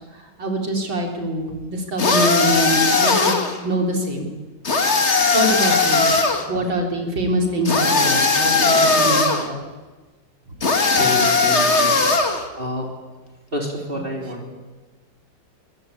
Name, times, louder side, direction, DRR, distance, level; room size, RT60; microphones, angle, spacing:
voice 1, 0.4-3.4 3.6-4.3 5.3-6.1 6.5-9.6, right 1 dB, 90° right, 2 dB, 4.4 m, -24 dB
sound 1, 2.0-3.6 4.6-6.4 7.7-9.5 10.6-12.4, left 3 dB, 35° left, 2.1 m, -18 dB
voice 2, 10.9-12.0 12.6-12.9 13.5-14.5, equal, 30° right, 0 dB, 3.7 m, -28 dB
23.5 x 20.0 x 8.7 m, 1.3 s
omnidirectional pair, 2.0 m